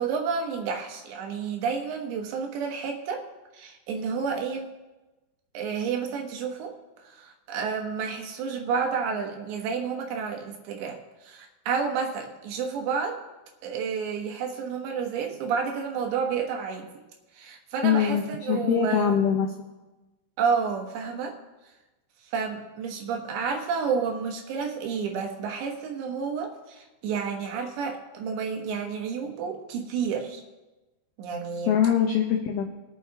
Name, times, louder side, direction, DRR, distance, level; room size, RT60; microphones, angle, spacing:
voice 1, 0.0-3.2 3.5-4.7 5.5-6.8 7.0-13.2 13.6-16.9 17.3-19.2 20.4-21.4 22.3-30.4 31.2-31.7, right 6 dB, 75° right, 2 dB, 3.1 m, -30 dB
voice 2, 17.8-19.5 31.7-32.6, left 8 dB, 85° left, 2 dB, 2.1 m, -23 dB
22.0 x 9.0 x 2.9 m, 1.1 s
omnidirectional pair, 5.6 m